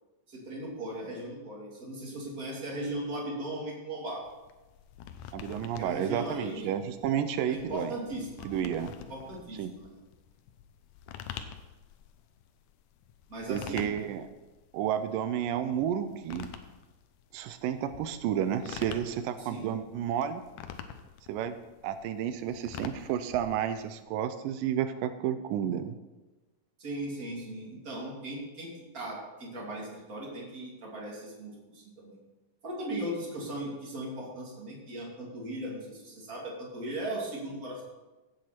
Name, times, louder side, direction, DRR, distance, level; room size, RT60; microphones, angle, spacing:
voice 1, 0.3-4.2 5.8-6.7 7.5-8.5 9.1-10.0 13.3-13.9 19.4-19.8 26.8-32.2 32.6-37.8, right 1 dB, 25° right, -3 dB, 2.9 m, -38 dB
sound 1, 4.2-24.0, left 9 dB, 75° left, 2.1 m, -47 dB
voice 2, 5.3-7.9 8.5-8.9 9.6-9.7 13.5-14.3 14.7-16.5 17.3-20.4 21.3-21.6 21.8-25.9, right 9 dB, 90° right, 10 dB, 2.3 m, -31 dB
15.5 x 7.7 x 4.4 m, 1.1 s
omnidirectional pair, 3.8 m